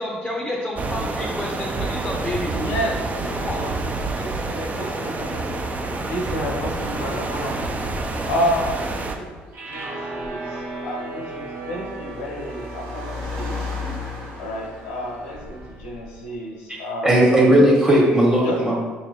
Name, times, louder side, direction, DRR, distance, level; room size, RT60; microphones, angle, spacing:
voice 1, 0.0-2.7 3.4-3.8, left 1 dB, 10° left, -2 dB, 0.6 m, -30 dB
sound 1, 0.8-9.2, right 2 dB, 35° right, 0.5 m, -28 dB
voice 2, 2.6-9.4 9.7-13.7 14.4-17.3 18.4-18.7, equal, 85° left, -1 dB, 0.7 m, -31 dB
Car, 8.5-16.3, left 3 dB, 85° right, 0.9 m, -36 dB
sound 2, 9.5-15.8, right 2 dB, 55° right, 1.0 m, -36 dB
voice 3, 17.0-18.7, right 1 dB, 15° right, -4 dB, 1.4 m, -16 dB
4.1 x 3.1 x 2.7 m, 1.4 s
hypercardioid pair, 65°, 5 cm